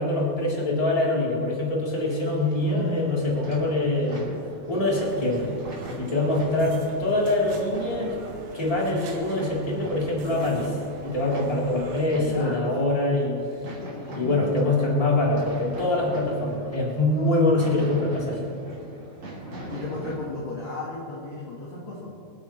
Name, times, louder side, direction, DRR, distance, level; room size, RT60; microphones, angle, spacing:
voice 1, 0.0-4.4 4.7-5.5 6.0-8.2 8.5-10.8 11.0-13.4 14.1-18.5, left 2 dB, 10° left, -5 dB, 2.4 m, -24 dB
sound 1, 1.9-20.2, right 1 dB, 30° right, 3.1 m, -41 dB
voice 2, 2.6-3.4 12.1-12.6 14.1-14.8 19.4-22.1, left 3 dB, 70° left, -5 dB, 1.6 m, -35 dB
sound 2, 4.9-12.1, right 3 dB, 85° right, 4.4 m, -43 dB
25.0 x 12.0 x 3.2 m, 2.5 s
omnidirectional pair, 5.9 m